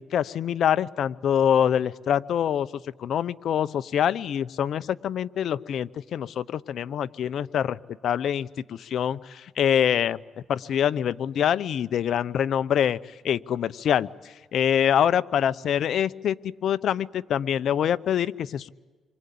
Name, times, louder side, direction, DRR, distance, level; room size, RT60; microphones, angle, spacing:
voice 1, 0.0-2.7 3.0-10.2 10.5-13.0 13.2-14.1 14.5-16.4 16.6-18.7, left 9 dB, 65° left, 14 dB, 0.8 m, -25 dB
28.0 x 24.5 x 8.6 m, 1.3 s
cardioid pair, 90°, 0 cm